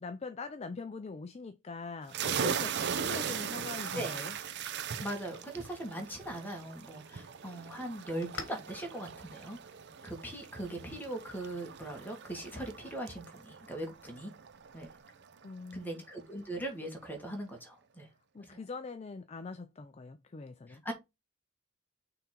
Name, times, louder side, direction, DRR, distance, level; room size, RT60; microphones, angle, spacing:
voice 1, 0.0-4.4 15.4-16.0 18.3-20.8, left 4 dB, 30° left, 0.4 m, -43 dB
sound 1, 2.1-15.4, right 7 dB, 50° right, 0.6 m, -39 dB
voice 2, 3.9-4.3 5.0-9.6 10.0-14.3 14.7-14.9 15.7-18.1 18.4-18.6 20.7-20.9, right 1 dB, 10° left, 1.7 m, -40 dB
sound 2, 8.0-15.0, left 4 dB, 60° left, 1.4 m, -54 dB
5.8 x 3.7 x 4.4 m
head